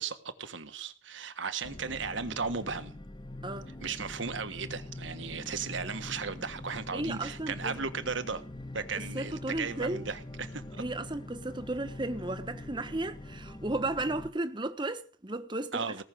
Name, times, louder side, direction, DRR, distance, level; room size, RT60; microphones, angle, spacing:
voice 1, 0.0-2.9 3.8-8.4 8.7-10.8 15.7-16.0, right 5 dB, 80° right, 1.4 m, -36 dB
sound 1, 1.6-14.3, left 2 dB, 25° left, 1.1 m, -44 dB
voice 2, 6.9-7.8 9.0-10.0 10.8-16.0, right 2 dB, 25° right, 1.1 m, -34 dB
18.5 x 6.4 x 7.9 m
head